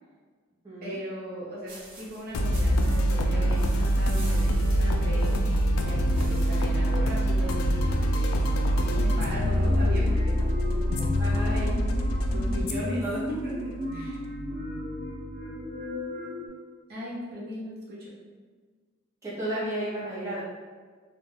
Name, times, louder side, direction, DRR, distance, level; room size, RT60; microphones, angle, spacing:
voice 1, 0.8-8.4 8.8-11.1 11.4-11.7 12.2-14.2 16.9-18.1, equal, 50° right, -6 dB, 0.7 m, -38 dB
sound 1, 1.7-6.8, right 2 dB, 85° right, 0.8 m, -48 dB
sound 2, 2.3-15.7, equal, 85° left, 0.3 m, -25 dB
sound 3, 8.9-16.5, left 1 dB, 35° right, 1.0 m, -36 dB
voice 2, 11.2-11.5 13.0-13.2 19.2-20.4, right 1 dB, 15° right, -9 dB, 0.7 m, -32 dB
2.3 x 2.1 x 3.2 m, 1.5 s
head